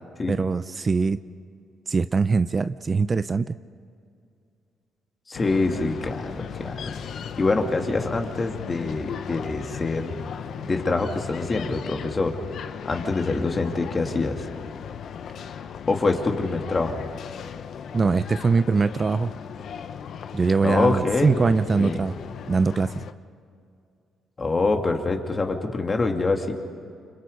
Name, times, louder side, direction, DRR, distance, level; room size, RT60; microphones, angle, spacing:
voice 1, 0.3-1.2 1.9-3.6 17.9-19.3 20.3-22.2 22.5-22.9, right 4 dB, 35° right, 12 dB, 0.6 m, -22 dB
sound 1, 5.3-23.1, left 7 dB, 65° left, 1.0 m, -37 dB
voice 2, 5.3-6.9 7.4-10.1 10.6-12.4 12.8-14.5 15.9-17.0 20.6-21.4 21.8-22.0 24.4-26.5, left 3 dB, 30° left, 3 dB, 2.7 m, -25 dB
29.0 x 26.0 x 5.4 m, 2.3 s
cardioid pair, 90°, 0 cm